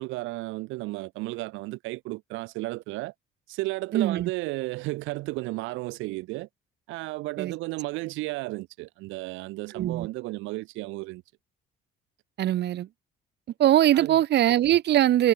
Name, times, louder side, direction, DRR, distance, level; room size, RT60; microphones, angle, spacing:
voice 1, 0.0-3.1 3.5-6.5 6.9-11.2 13.9-14.2, right 21 dB, 85° right, 4.1 m, -33 dB
voice 2, 3.9-4.3 7.4-7.5 9.7-10.1 12.4-12.9 13.6-15.3, right 12 dB, 60° right, 1.1 m, -21 dB
supercardioid pair, 80°, 20 cm